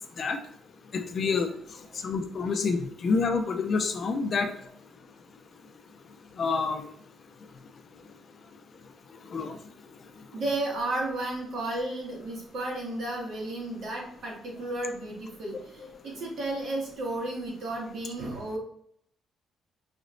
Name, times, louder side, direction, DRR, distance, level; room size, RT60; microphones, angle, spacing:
voice 1, 0.9-1.5 2.0-4.5 6.4-6.9 9.3-9.6, left 4 dB, 40° left, 6 dB, 0.4 m, -27 dB
voice 2, 10.3-18.6, right 2 dB, 60° right, -2 dB, 1.7 m, -33 dB
5.0 x 3.1 x 2.5 m, 0.67 s
cardioid pair, 145°, 0 cm